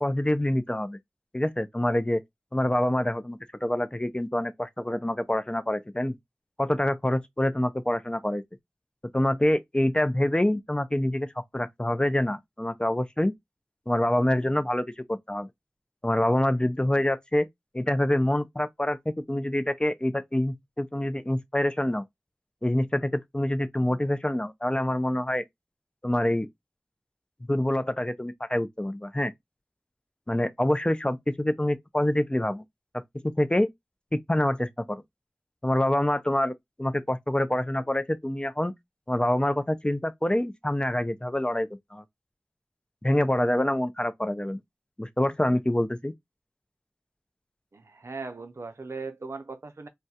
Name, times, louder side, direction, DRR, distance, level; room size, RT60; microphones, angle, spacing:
voice 1, 0.0-1.0 1.3-2.2 2.5-6.1 6.6-8.4 9.1-13.3 13.9-15.5 16.0-17.5 17.7-22.0 22.6-25.4 26.0-26.5 27.5-29.3 30.3-32.6 33.2-33.7 34.1-35.0 35.6-36.5 36.8-38.7 39.1-42.0 43.0-44.6 45.0-46.1, left 1 dB, 20° left, 0.3 m, -26 dB
voice 2, 47.7-49.9, right 4 dB, 70° right, 0.4 m, -38 dB
2.3 x 2.0 x 2.7 m
wide cardioid pair, 45°, 5 cm